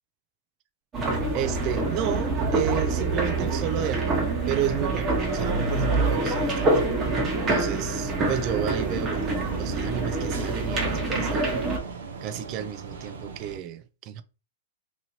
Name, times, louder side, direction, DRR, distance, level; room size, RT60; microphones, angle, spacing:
sound 1, 0.9-11.8, right 2 dB, 25° right, 1.1 m, -26 dB
voice 1, 1.3-6.7 7.5-11.6 12.2-14.2, right 10 dB, 40° right, 0.4 m, -32 dB
sound 2, 8.2-13.6, right 5 dB, 75° right, 0.7 m, -37 dB
3.0 x 2.6 x 2.8 m
hypercardioid pair, 120°, 0 cm